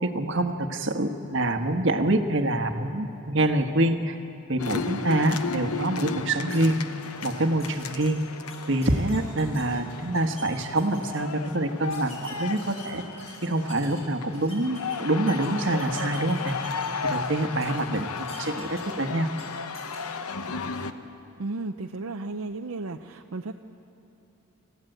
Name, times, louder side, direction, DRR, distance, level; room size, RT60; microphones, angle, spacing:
voice 1, 0.0-4.2 4.5-6.8 7.2-8.2 8.7-13.0 13.4-16.5 17.0-19.3, right 1 dB, 55° right, 7 dB, 1.3 m, -26 dB
sound 1, 4.6-20.9, left 5 dB, 90° left, 0.9 m, -35 dB
sound 2, 6.5-6.6 7.0-7.3 7.6-9.6 10.0-10.4 10.8-11.2 11.9-14.0 14.3-15.5 15.8-17.3 17.6-19.0 19.3-19.4 19.7-20.0, left 1 dB, 30° left, 7.8 m, -46 dB
voice 2, 21.4-23.5, right 3 dB, 75° right, 5 dB, 0.6 m, -34 dB
27.5 x 15.0 x 9.1 m, 2.9 s
head